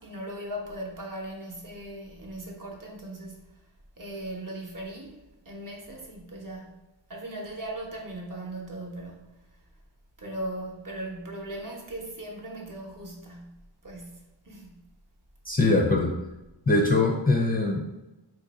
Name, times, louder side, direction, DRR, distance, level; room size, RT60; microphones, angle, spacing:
voice 1, 0.0-3.4 4.0-6.8 7.1-9.3 10.2-14.9, right 1 dB, 45° right, 0.8 m, -38 dB
voice 2, 15.4-16.1 16.7-17.8, left 2 dB, 20° left, 0.4 m, -22 dB
3.0 x 2.5 x 4.0 m
wide cardioid pair, 75°, 46 cm